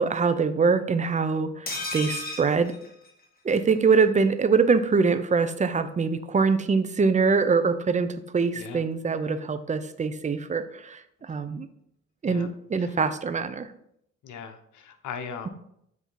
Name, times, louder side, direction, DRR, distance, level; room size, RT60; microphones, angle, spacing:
voice 1, 0.0-2.7 3.4-11.7 12.2-13.7, right 5 dB, 25° right, 11 dB, 0.5 m, -24 dB
sound 1, 1.7-3.6 3.9-4.0 4.3-4.4, left 2 dB, 30° left, 1.6 m, -35 dB
voice 2, 8.5-8.8 12.2-12.5 12.8-13.0 14.2-15.5, left 6 dB, 75° left, 7 dB, 0.9 m, -39 dB
7.9 x 2.8 x 4.5 m, 0.73 s
cardioid pair, 90°, 30 cm